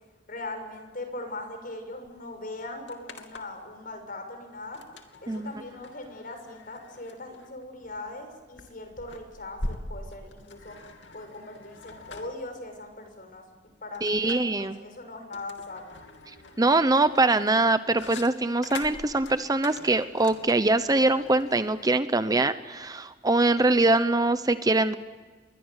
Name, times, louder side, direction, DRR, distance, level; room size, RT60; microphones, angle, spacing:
voice 1, 0.3-4.8 5.2-10.8 11.1-13.4 13.8-16.0, left 2 dB, 50° left, 7 dB, 6.4 m, -40 dB
sound 1, 2.0-2.1 2.4-3.7 4.7-21.9, left 2 dB, 90° left, 2.8 m, -43 dB
voice 2, 14.0-14.8 16.6-24.9, right 2 dB, 20° right, 12 dB, 0.8 m, -23 dB
29.5 x 22.5 x 8.1 m, 1.4 s
head